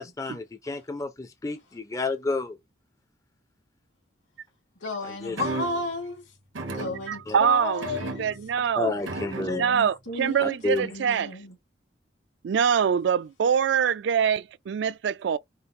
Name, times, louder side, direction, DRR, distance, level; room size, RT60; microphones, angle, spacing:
voice 1, 0.0-2.6 5.0-5.4 7.3-7.4 8.8-9.6 10.4-10.9, left 3 dB, 15° left, 0.4 m, -30 dB
voice 2, 4.8-6.2 6.6-8.3 8.6-8.7 9.4-10.6 10.8-11.5, left 2 dB, 80° left, 2.5 m, -33 dB
sound 1, 5.4-6.0 6.6-7.4 7.8-8.6 9.1-9.8 10.8-11.1, right 2 dB, 90° right, 1.2 m, -35 dB
voice 3, 7.1-7.9 8.2-8.9 9.5-11.4 12.4-15.4, right 7 dB, 65° right, 0.3 m, -24 dB
5.4 x 2.0 x 4.1 m
head